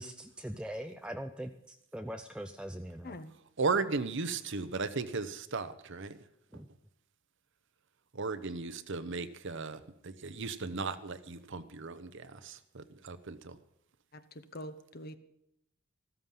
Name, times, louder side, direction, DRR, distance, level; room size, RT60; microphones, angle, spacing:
voice 1, 0.0-3.1 6.5-6.7, equal, 5° right, 6 dB, 0.5 m, -41 dB
voice 2, 3.6-6.2 8.1-13.6, right 4 dB, 60° right, 12 dB, 0.9 m, -36 dB
voice 3, 14.1-15.2, left 1 dB, 50° left, 10 dB, 1.1 m, -45 dB
15.0 x 13.0 x 5.6 m, 0.78 s
head